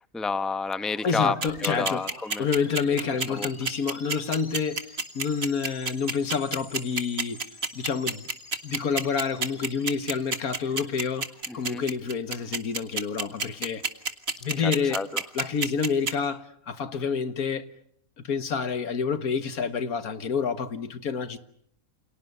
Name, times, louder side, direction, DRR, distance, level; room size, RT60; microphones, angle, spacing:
voice 1, 0.1-1.4 1.6-2.5 3.3-3.5 11.5-11.8 14.6-15.1, left 4 dB, ahead, 0.8 m, -29 dB
sound 1, 0.7-12.4, left 2 dB, 60° left, 4.0 m, -49 dB
voice 2, 1.0-2.0 2.4-4.9 5.2-7.4 7.7-8.3 8.6-11.3 11.5-13.8 14.4-15.0 15.3-17.7 18.2-21.4, left 6 dB, 85° left, 1.9 m, -28 dB
sound 2, 1.4-16.1, right 4 dB, 45° right, 2.0 m, -28 dB
29.5 x 28.0 x 6.7 m
omnidirectional pair, 1.5 m